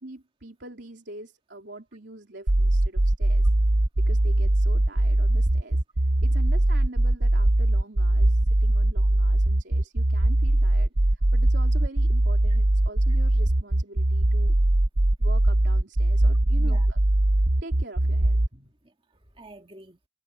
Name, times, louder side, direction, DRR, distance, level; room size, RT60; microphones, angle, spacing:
voice 1, 0.0-3.5 4.0-5.8 6.2-14.6 15.2-17.0 17.6-18.4, right 2 dB, 75° right, 3.5 m, -44 dB
sound 1, 2.5-18.5, right 1 dB, 55° right, 0.9 m, -21 dB
voice 2, 16.6-16.9 18.5-20.1, right 1 dB, 30° right, 2.3 m, -49 dB
head